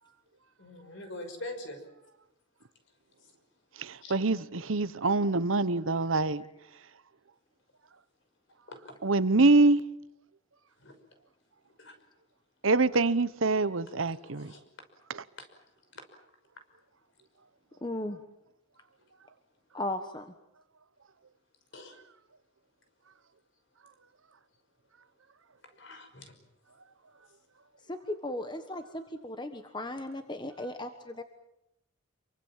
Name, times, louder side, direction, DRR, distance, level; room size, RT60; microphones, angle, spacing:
voice 1, 0.6-1.8 4.0-4.1 8.7-9.0 10.8-10.9 11.8-12.0 14.3-14.6 15.4-15.5 16.0-16.1 21.7-22.0 25.6-26.3, left 1 dB, 55° left, 5.7 m, -43 dB
voice 2, 3.8-6.4 9.0-9.8 12.6-14.5 15.1-15.2, right 3 dB, 70° right, 1.0 m, -25 dB
voice 3, 17.8-18.2 19.7-20.3 27.9-31.2, left 1 dB, 20° left, 1.3 m, -36 dB
27.5 x 24.0 x 7.4 m
head